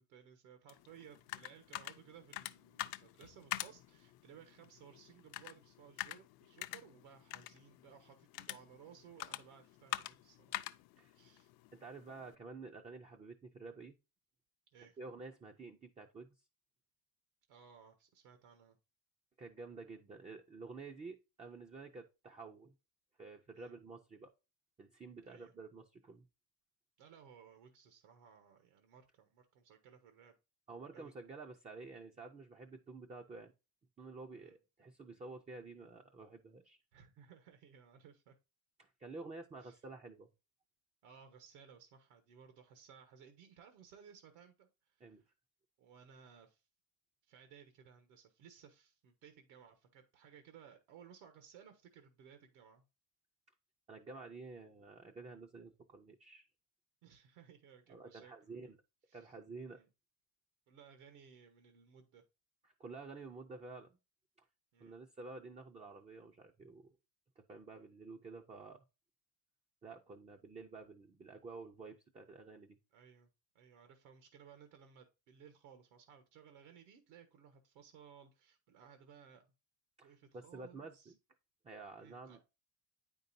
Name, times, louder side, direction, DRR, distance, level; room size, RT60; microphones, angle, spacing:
voice 1, 0.0-10.6 11.1-11.5 14.7-15.0 17.5-18.8 23.5-23.8 25.2-25.5 27.0-30.3 30.9-31.1 34.4-34.6 36.9-38.3 39.6-39.8 41.0-45.2 45.8-46.6 47.2-52.8 57.0-58.7 59.1-59.4 59.7-59.9 60.7-62.2 64.7-65.0 72.9-73.3 73.5-79.5 80.0-81.1 82.0-82.4, right 7 dB, 85° right, 6 dB, 1.3 m, -60 dB
sound 1, 0.7-12.3, left 16 dB, 50° left, 0.5 m, -47 dB
voice 2, 11.7-13.9 15.0-16.3 19.4-22.7 23.2-24.3 24.8-26.3 30.7-33.5 34.0-36.8 38.8-40.3 45.0-45.2 53.9-56.5 57.9-58.8 59.1-59.8 62.6-64.0 64.8-67.0 67.4-68.8 69.8-72.8 80.0-81.2 81.6-82.4, right 3 dB, 15° right, 3 dB, 0.3 m, -50 dB
8.7 x 5.3 x 2.6 m, 0.27 s
cardioid pair, 140°, 49 cm